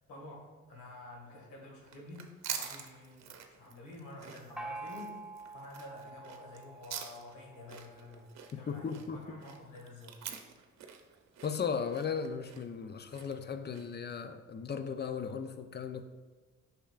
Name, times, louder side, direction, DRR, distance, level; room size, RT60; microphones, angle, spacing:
voice 1, 0.1-5.2 5.5-10.2, left 2 dB, 80° left, -2 dB, 2.0 m, -50 dB
sound 1, 1.8-14.1, right 8 dB, 60° right, 0.8 m, -46 dB
Gong, 4.6-8.1, right 2 dB, ahead, 0.9 m, -46 dB
voice 2, 8.5-9.4 11.4-16.0, left 6 dB, 35° left, 9 dB, 0.5 m, -36 dB
8.6 x 5.8 x 2.5 m, 1.4 s
cardioid pair, 90°, 30 cm